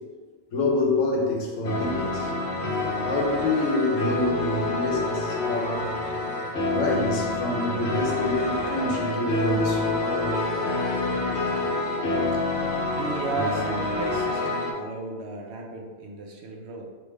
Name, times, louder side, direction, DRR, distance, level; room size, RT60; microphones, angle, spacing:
voice 1, 0.5-2.3 3.0-5.9 6.7-10.4 12.0-12.3, left 2 dB, 90° left, -2 dB, 1.1 m, -27 dB
sound 1, 1.6-14.7, left 2 dB, 65° left, 0.9 m, -27 dB
voice 2, 12.9-16.9, right 3 dB, 65° right, -1 dB, 0.8 m, -34 dB
3.4 x 2.5 x 3.2 m, 1.4 s
omnidirectional pair, 1.3 m